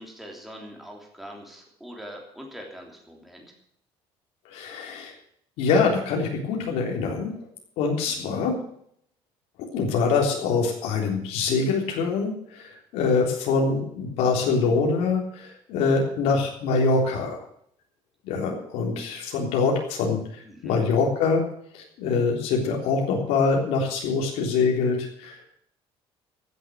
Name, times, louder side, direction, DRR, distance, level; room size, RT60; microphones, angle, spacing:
voice 1, 0.0-3.5 8.0-8.4 20.4-20.7, equal, ahead, 0 dB, 3.1 m, -43 dB
voice 2, 4.5-5.1 5.6-7.3 7.8-8.6 9.6-17.4 18.2-20.2 20.6-21.4 21.7-25.6, left 4 dB, 85° left, 0 dB, 3.6 m, -24 dB
15.5 x 8.5 x 7.7 m, 0.68 s
cardioid pair, 180°, 11 cm